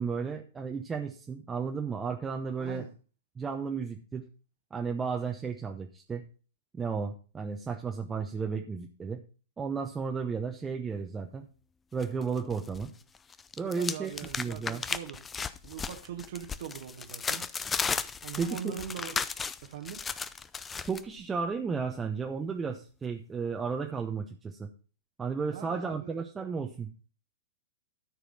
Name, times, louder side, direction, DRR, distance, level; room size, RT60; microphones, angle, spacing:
voice 1, 0.0-2.9 3.4-4.3 4.7-6.2 6.7-9.2 9.6-11.5 11.9-12.9 13.6-14.1 14.4-14.8 18.4-18.8 20.9-24.7 25.2-26.9, right 5 dB, 15° right, 3 dB, 0.9 m, -33 dB
voice 2, 2.6-2.9 13.7-15.2 15.6-17.5 17.8-19.2 19.6-20.0 25.4-26.2, right 9 dB, 60° right, 2 dB, 1.3 m, -41 dB
sound 1, 12.0-12.9 13.2-21.0, left 5 dB, 15° left, 0.5 m, -35 dB
13.0 x 4.7 x 5.5 m, 0.37 s
hypercardioid pair, 110°, 0 cm